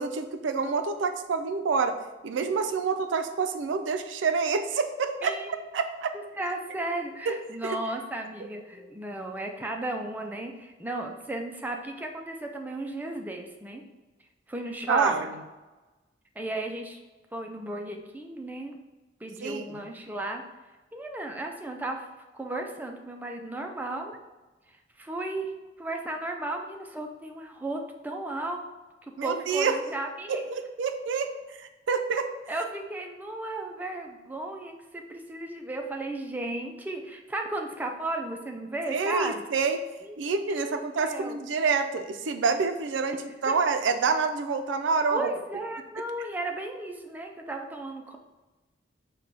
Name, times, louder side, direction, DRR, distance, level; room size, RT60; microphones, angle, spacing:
voice 1, 0.0-2.0 2.2-5.4 5.7-6.1 7.3-7.4 7.6-7.8 14.9-15.3 19.4-19.8 29.2-29.8 30.3-31.3 31.6-32.3 38.9-39.8 40.2-43.2 43.4-45.3, right 5 dB, 90° right, 7 dB, 0.4 m, -27 dB
voice 2, 5.2-5.6 6.1-13.8 14.5-15.2 16.4-17.0 17.3-18.7 19.2-20.4 20.9-22.1 22.3-24.1 25.0-25.5 25.8-28.6 29.2-30.4 32.5-39.5 40.0-40.2 40.5-41.4 43.5-43.6 45.1-48.2, right 2 dB, 10° right, 2 dB, 0.4 m, -34 dB
4.7 x 2.2 x 3.8 m, 1.2 s
head